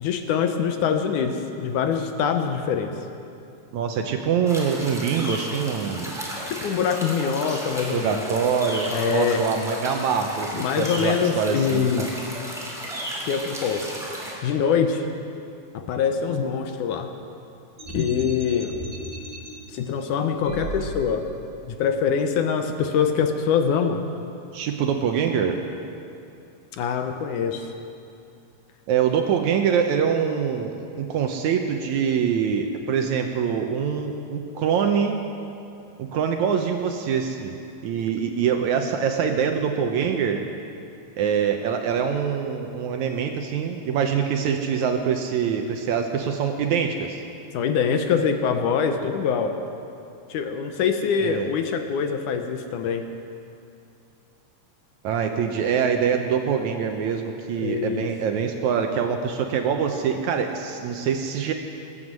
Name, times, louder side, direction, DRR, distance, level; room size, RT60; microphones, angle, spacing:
voice 1, 0.0-2.9 6.5-8.2 8.9-9.4 10.5-12.1 13.3-14.0 14.4-15.0 15.7-17.1 17.9-18.7 19.7-21.3 21.7-24.0 26.8-27.7 47.5-49.5 50.3-53.0 57.6-58.1, left 7 dB, 75° left, 6 dB, 2.2 m, -24 dB
voice 2, 3.7-6.2 7.9-12.1 24.5-25.6 28.9-35.2 36.0-40.4 41.2-47.2 51.2-51.5 55.0-61.5, right 7 dB, 70° right, 4 dB, 1.9 m, -24 dB
sound 1, 4.5-14.4, equal, ahead, 2.5 m, -34 dB
sound 2, 17.8-19.5 20.4-21.3, right 1 dB, 30° right, 3.3 m, -36 dB
20.0 x 9.7 x 7.5 m, 2.6 s
omnidirectional pair, 3.9 m